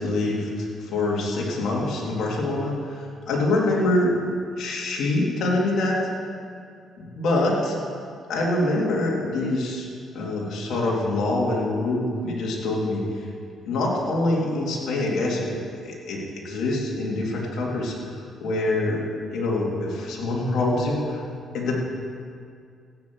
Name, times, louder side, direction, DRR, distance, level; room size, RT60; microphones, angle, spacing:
voice 1, 0.0-4.2 4.6-6.0 7.0-7.8 8.3-9.9 10.1-13.0 13.6-17.9 18.4-19.0 19.3-21.2 21.5-21.8, left 2 dB, 70° left, -3 dB, 3.5 m, -25 dB
15.5 x 9.4 x 6.5 m, 2.3 s
cardioid pair, 90°, 0 cm